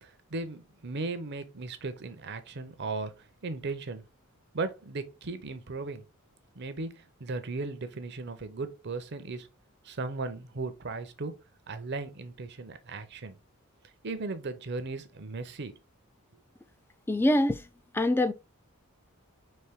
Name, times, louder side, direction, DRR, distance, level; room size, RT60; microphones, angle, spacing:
voice 1, 0.0-4.0 4.5-6.1 6.6-9.5 9.8-11.3 11.7-13.4 14.0-15.7, right 3 dB, 50° right, 0.7 m, -37 dB
voice 2, 17.1-17.6 17.9-18.3, left 1 dB, 10° left, 0.3 m, -24 dB
4.3 x 3.1 x 3.5 m
head